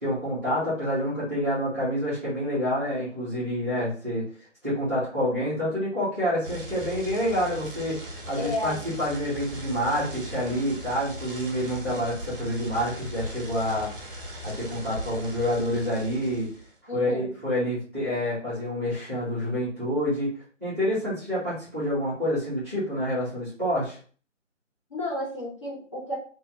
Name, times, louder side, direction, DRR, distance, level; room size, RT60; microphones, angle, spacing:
voice 1, 0.0-4.2 4.6-8.0 8.3-16.5 16.9-20.3 20.6-24.0, equal, 10° right, -13 dB, 0.7 m, -28 dB
sound 1, 6.4-16.7, right 1 dB, 45° right, 0.7 m, -39 dB
voice 2, 8.4-8.8 16.9-17.3 24.9-26.1, left 1 dB, 25° left, -7 dB, 0.7 m, -32 dB
2.7 x 2.5 x 2.6 m, 0.43 s
figure-of-eight pair, 150°, 38 cm